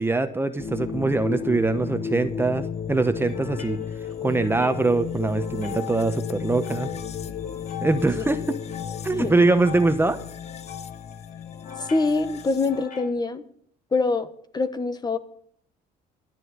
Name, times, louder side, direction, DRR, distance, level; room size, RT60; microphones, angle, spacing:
voice 1, 0.0-3.8 4.2-6.9 7.8-8.4 9.0-10.2, right 3 dB, 15° right, 9 dB, 0.9 m, -23 dB
sound 1, 0.6-12.9, left 7 dB, 40° left, 0.8 m, -33 dB
sound 2, 3.1-13.1, left 8 dB, 55° left, 3.9 m, -41 dB
voice 2, 11.8-13.4 13.9-14.3 14.5-15.2, left 3 dB, 25° left, 11 dB, 1.1 m, -24 dB
12.5 x 7.6 x 9.7 m, 0.64 s
cardioid pair, 110°, 17 cm